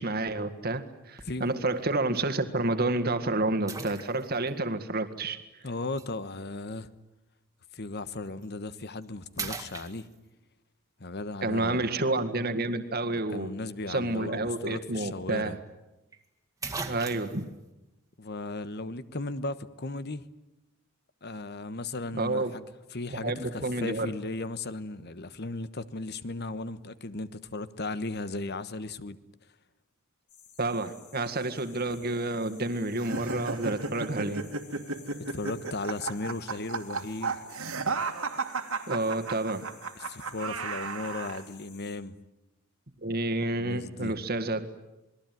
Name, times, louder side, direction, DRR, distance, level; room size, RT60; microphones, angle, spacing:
voice 1, 0.0-5.4 11.4-13.5 13.9-15.6 16.9-17.5 22.1-22.5 23.1-24.1 30.6-34.4 38.9-39.7 43.0-44.6, right 2 dB, 45° right, 1.8 m, -29 dB
sound 1, 1.2-1.5 2.2-2.3 3.7-4.5 6.0-6.1 8.3-8.4 8.9-9.1 9.4-10.5 14.6-14.7 15.0-15.1 16.1-16.2 16.6-17.5, right 4 dB, 15° right, 2.0 m, -38 dB
voice 2, 5.6-6.9 7.7-10.1 11.0-11.9 13.3-15.6 18.2-20.3 21.2-22.6 22.9-29.2 35.3-37.5 40.0-42.2 43.6-44.2, left 2 dB, 45° left, 1.2 m, -36 dB
sound 2, 30.3-42.0, left 7 dB, 85° left, 5.0 m, -55 dB
sound 3, 33.0-41.4, right 4 dB, 70° right, 2.4 m, -34 dB
28.0 x 21.0 x 9.3 m
head